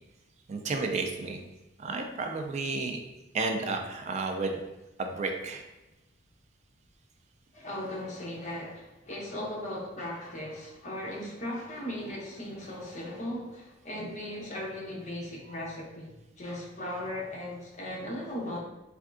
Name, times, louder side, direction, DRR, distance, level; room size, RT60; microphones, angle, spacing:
voice 1, 0.5-1.4 1.8-3.0 3.3-4.6 5.0-5.6, right 3 dB, 35° right, 4 dB, 0.3 m, -32 dB
voice 2, 7.5-18.6, left 1 dB, 40° left, -3 dB, 0.7 m, -37 dB
3.4 x 2.3 x 2.4 m, 0.99 s
head